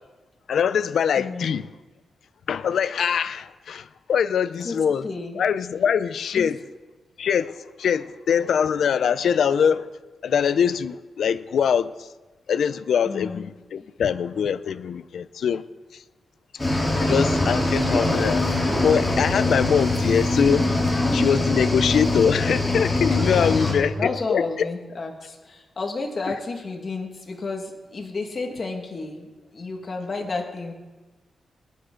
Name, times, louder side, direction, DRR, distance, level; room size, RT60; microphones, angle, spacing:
voice 1, 0.5-1.7 2.5-5.0 5.3-6.6 7.2-9.9 10.2-11.9 12.5-15.6 17.0-18.5 18.8-20.7 21.1-24.5, left 7 dB, 75° left, 0.5 m, -23 dB
voice 2, 1.2-1.6 4.6-5.4 6.3-6.6 13.0-13.5 13.8-13.9 23.4-30.7, left 3 dB, 40° left, 1.8 m, -32 dB
Cricket / Waves surf, 16.6-23.7, left 2 dB, 15° left, 3.3 m, -22 dB
20.0 x 9.9 x 3.9 m
wide cardioid pair, 135°, 0 cm